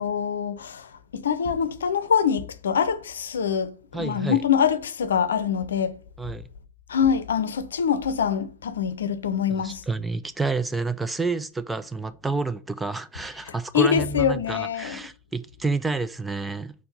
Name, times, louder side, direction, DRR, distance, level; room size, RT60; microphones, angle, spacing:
voice 1, 0.0-6.0 6.9-9.8 13.5-15.0, left 7 dB, 65° left, 0.6 m, -24 dB
voice 2, 3.9-4.4 6.2-6.5 9.6-16.7, right 3 dB, 10° right, 0.4 m, -29 dB
4.8 x 4.5 x 5.2 m
figure-of-eight pair, 90°, 0 cm